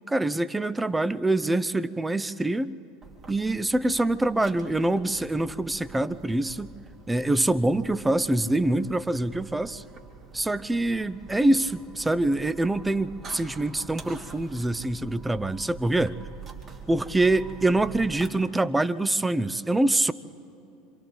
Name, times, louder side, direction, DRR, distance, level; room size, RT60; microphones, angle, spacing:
voice 1, 0.1-2.8 3.3-6.7 7.1-9.8 10.3-16.2 16.9-20.1, right 2 dB, 10° right, 14 dB, 0.6 m, -25 dB
sound 1, 3.0-18.3, right 4 dB, 35° right, 2.8 m, -45 dB
27.5 x 25.0 x 4.0 m, 2.9 s
hypercardioid pair, 80°, 0 cm